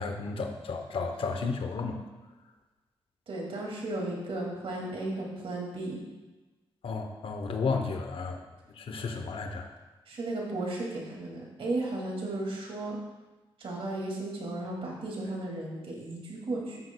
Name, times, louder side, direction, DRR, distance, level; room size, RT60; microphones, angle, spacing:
voice 1, 0.0-2.0 6.8-8.4 8.8-9.7, left 4 dB, 65° left, 4 dB, 0.8 m, -32 dB
voice 2, 3.3-6.0 10.1-13.0 13.6-16.8, right 2 dB, 65° right, -1 dB, 2.2 m, -35 dB
12.5 x 6.4 x 2.2 m, 1.2 s
cardioid pair, 75°, 10 cm